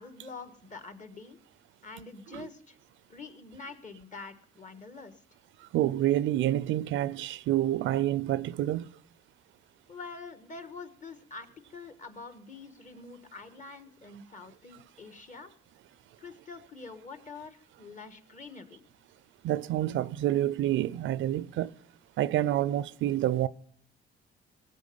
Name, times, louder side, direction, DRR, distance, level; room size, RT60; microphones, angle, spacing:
voice 1, 0.0-1.4 1.8-2.8 3.1-5.2 9.9-15.5 16.2-18.9, left 4 dB, 40° left, 1.5 m, -46 dB
voice 2, 5.7-8.9 19.4-21.7 22.2-23.5, right 13 dB, 75° right, 0.5 m, -28 dB
18.0 x 7.8 x 5.4 m
cardioid pair, 90°, 20 cm